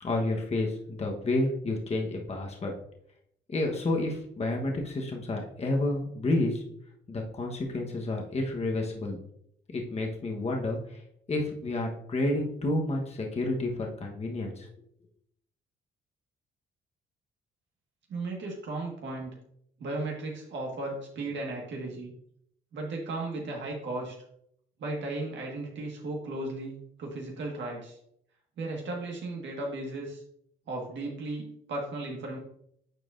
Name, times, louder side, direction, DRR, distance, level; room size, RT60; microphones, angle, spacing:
voice 1, 0.0-2.7 3.5-6.6 7.1-9.2 9.7-11.0 11.3-14.7, left 2 dB, 30° left, 1 dB, 1.1 m, -30 dB
voice 2, 18.1-19.3 19.8-22.1 22.7-24.1 24.8-28.0 28.6-30.2 30.7-32.4, right 2 dB, 65° right, 0 dB, 1.7 m, -35 dB
9.0 x 4.6 x 2.6 m, 0.71 s
cardioid pair, 90°, 20 cm